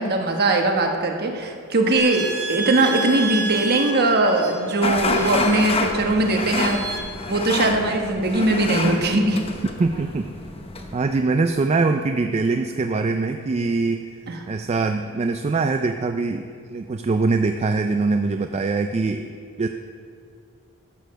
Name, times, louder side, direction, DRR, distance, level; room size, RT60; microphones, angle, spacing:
voice 1, 0.0-6.8 7.3-9.4 14.3-14.4, right 2 dB, 45° right, 3 dB, 1.2 m, -20 dB
sound 1, 2.0-7.0, right 3 dB, 85° right, 2.2 m, -31 dB
sound 2, 4.8-11.1, left 2 dB, 25° left, 0.8 m, -28 dB
voice 2, 9.8-10.3 10.9-14.1 14.5-16.4 16.7-19.3 19.6-19.7, right 3 dB, 30° right, 7 dB, 0.3 m, -23 dB
12.5 x 6.7 x 6.3 m, 2.4 s
head